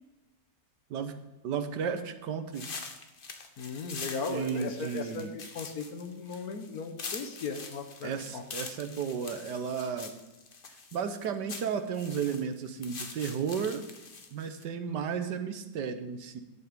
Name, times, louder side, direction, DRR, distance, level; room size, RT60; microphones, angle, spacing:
voice 1, 1.4-2.7 4.3-5.3 8.0-10.1 10.9-13.8 14.3-16.4, right 7 dB, 75° right, 9 dB, 1.5 m, -33 dB
sound 1, 2.5-14.6, left 4 dB, 35° left, 1.0 m, -44 dB
voice 2, 3.6-8.4, left 4 dB, 60° left, 6 dB, 1.4 m, -37 dB
11.0 x 8.4 x 5.2 m, 1.0 s
omnidirectional pair, 2.0 m